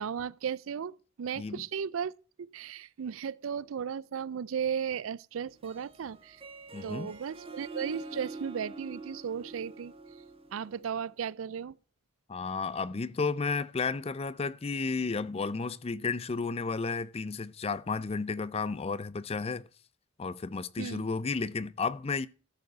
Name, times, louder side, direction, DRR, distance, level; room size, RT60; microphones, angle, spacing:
voice 1, 0.0-2.1 2.4-6.4 6.8-10.2 10.5-11.8 20.8-21.1, right 7 dB, 85° right, 0.4 m, -35 dB
Harp, 5.5-11.0, right 3 dB, 30° right, 1.6 m, -45 dB
voice 2, 6.7-7.1 12.3-19.7 20.2-22.3, left 4 dB, 30° left, 0.4 m, -32 dB
13.0 x 5.3 x 6.7 m
head